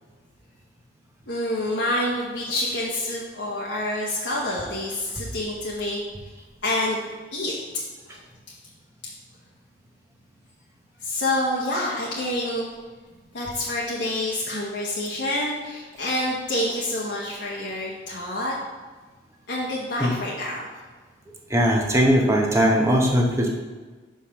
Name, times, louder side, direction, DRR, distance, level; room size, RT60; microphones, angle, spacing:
voice 1, 1.3-6.0 6.6-7.0 7.3-7.6 8.1-8.2 11.0-12.6 13.3-18.5 19.5-20.6, left 1 dB, 65° left, -5 dB, 1.1 m, -27 dB
voice 2, 21.5-23.5, equal, 15° right, 0 dB, 0.9 m, -19 dB
5.7 x 4.9 x 5.7 m, 1.4 s
head